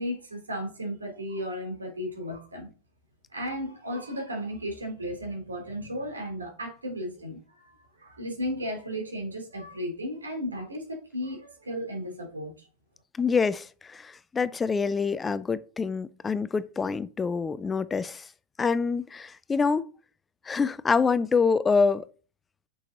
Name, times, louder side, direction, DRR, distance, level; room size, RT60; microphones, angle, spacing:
voice 1, 0.0-2.7 3.3-12.5, equal, 75° right, 3.3 m, -34 dB
voice 2, 13.2-18.2 18.6-19.9 20.5-22.0, left 5 dB, 15° left, 0.5 m, -26 dB
6.9 x 6.3 x 3.9 m
figure-of-eight pair, 90°, 0 cm